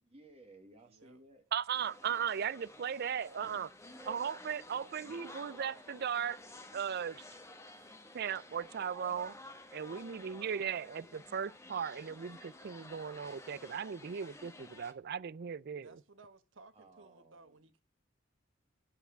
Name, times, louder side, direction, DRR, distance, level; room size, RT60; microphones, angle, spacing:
voice 1, 0.0-1.4 3.0-3.4 3.9-5.8 16.7-17.6, right 2 dB, 30° right, 1.7 m, -60 dB
voice 2, 0.8-1.2 15.8-17.8, right 3 dB, 75° right, 1.2 m, -59 dB
voice 3, 1.5-3.7 4.1-6.4 6.7-7.2 8.1-9.3 9.7-15.9, right 7 dB, 55° right, 0.4 m, -37 dB
sound 1, 1.7-14.9, left 2 dB, 15° left, 1.1 m, -53 dB
10.5 x 5.8 x 7.1 m
head